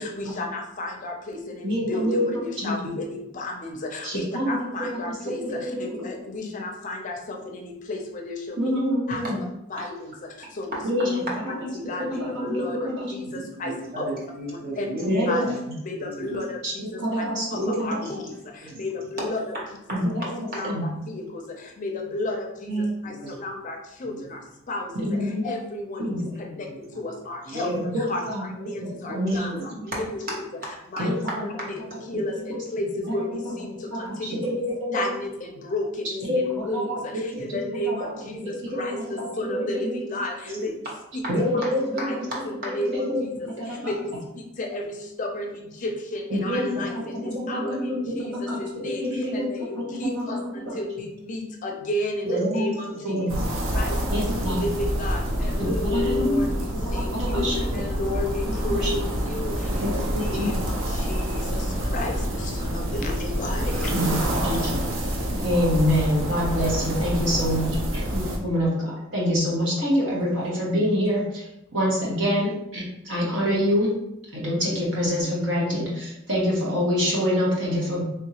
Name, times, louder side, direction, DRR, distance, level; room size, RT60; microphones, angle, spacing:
voice 1, 0.0-8.6 9.1-9.2 9.7-11.2 11.5-14.0 14.8-14.9 15.3-15.4 15.8-19.5 20.5-27.7 28.0-30.3 30.9-31.1 31.4-31.5 32.1-34.4 34.9-40.7 41.1-41.2 41.5-42.3 42.6-52.3 52.5-53.4 53.7-54.2 54.5-64.2, left 2 dB, 40° left, 2 dB, 0.5 m, -33 dB
voice 2, 1.6-2.9 4.0-4.6 4.9-5.1 5.4-5.8 6.4-6.5 8.6-9.4 10.8-11.1 11.8-13.1 15.0-15.5 16.6-17.4 17.9-18.0 19.9-21.0 25.1-25.4 26.0-26.2 27.8-28.4 28.8-29.2 31.0-31.1 32.1-32.2 32.5-32.6 33.4-33.5 33.9-35.0 36.3-38.1 38.4-40.0 41.3-42.2 42.7-43.2 43.6-43.9 46.3-50.4 50.6-50.8 52.5-52.7 53.0-53.4 54.0-54.6 55.6-56.4 56.8-57.8 58.5-58.6 58.8-58.9 59.8-60.5 63.9-64.7 65.4-71.4 71.7-73.9 74.3-78.0, equal, 65° right, -5 dB, 1.3 m, -26 dB
voice 3, 10.7-11.4 13.2-15.6 16.0-16.5 17.5-18.2 18.6-18.8 19.2-19.3 19.5-19.6 19.9-20.7 22.7-23.4 24.0-24.2 26.3-27.0 27.4-27.8 28.2-28.3 28.7-28.8 29.1-31.7 38.3-39.3 40.4-40.8 41.2-41.3 41.6-41.7 42.0-42.8 43.8-43.9 47.1-47.4 48.9-49.1 49.9-50.1 52.2-52.6 53.1-53.5 54.2-54.4 59.7-60.1 64.6-64.7 65.1-65.5 70.2-70.3, right 1 dB, 50° right, -4 dB, 1.0 m, -33 dB
sound 1, 53.3-68.4, equal, 85° right, 0.6 m, -27 dB
3.5 x 2.7 x 2.8 m, 0.83 s
head